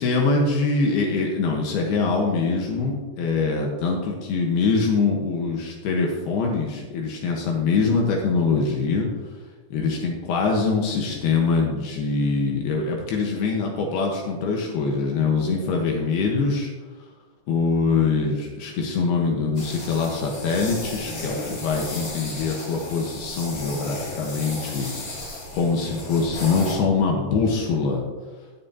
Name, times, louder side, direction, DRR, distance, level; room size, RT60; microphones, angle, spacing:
voice 1, 0.0-9.1 9.7-16.7 17.5-24.9 25.5-28.0, left 4 dB, 75° left, 0 dB, 3.2 m, -23 dB
sound 1, 19.6-26.8, left 2 dB, 45° left, 3.2 m, -34 dB
18.5 x 7.4 x 2.9 m, 1.3 s
omnidirectional pair, 4.6 m